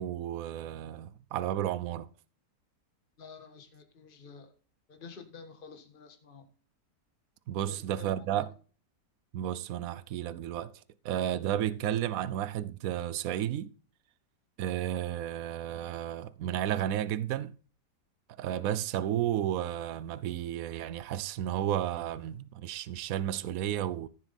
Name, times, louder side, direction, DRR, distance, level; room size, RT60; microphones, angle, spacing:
voice 1, 0.0-2.1 7.5-8.5 9.3-10.7 11.0-13.7 14.6-17.6 18.4-24.1, right 11 dB, 65° right, 0.9 m, -32 dB
voice 2, 3.2-4.5 4.9-6.4 8.0-8.3, left 5 dB, 30° left, 1.7 m, -49 dB
15.0 x 7.1 x 4.1 m
omnidirectional pair, 1.8 m